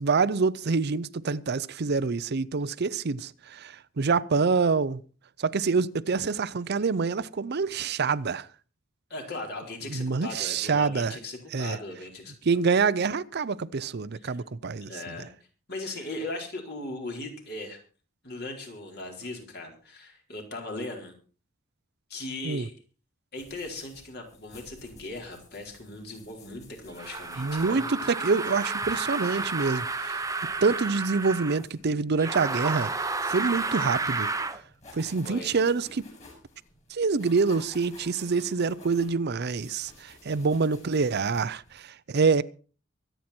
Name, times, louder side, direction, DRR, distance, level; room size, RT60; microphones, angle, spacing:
voice 1, 0.0-5.0 5.4-8.5 9.9-11.2 11.5-11.8 12.5-14.9 22.4-22.7 27.4-30.2 30.6-34.3 34.9-36.0 36.9-42.4, right 4 dB, 55° right, 0.6 m, -26 dB
voice 2, 9.1-12.4 14.2-14.4 14.8-15.3 15.7-17.8 18.2-21.1 22.1-22.7 23.3-27.8 35.2-35.6, left 2 dB, 55° left, 4.4 m, -38 dB
sound 1, 23.4-41.7, left 2 dB, 35° left, 7.2 m, -54 dB
sound 2, 27.0-31.6 32.2-34.6, right 3 dB, 15° right, 0.9 m, -31 dB
24.0 x 9.1 x 4.4 m
head